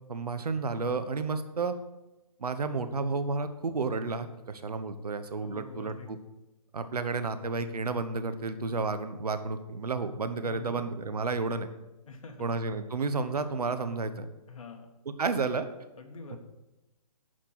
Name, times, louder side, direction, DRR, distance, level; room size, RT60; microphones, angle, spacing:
voice 1, 0.1-1.7 2.4-6.2 6.7-11.7 12.4-14.3 15.2-15.7 16.3-16.4, right 4 dB, 80° right, 10 dB, 1.0 m, -31 dB
voice 2, 5.4-6.1 10.4-10.8 12.1-12.5 14.5-14.9 16.0-16.4, left 3 dB, 60° left, 4 dB, 1.6 m, -46 dB
11.0 x 4.4 x 5.8 m, 1.0 s
hypercardioid pair, 150°, 20 cm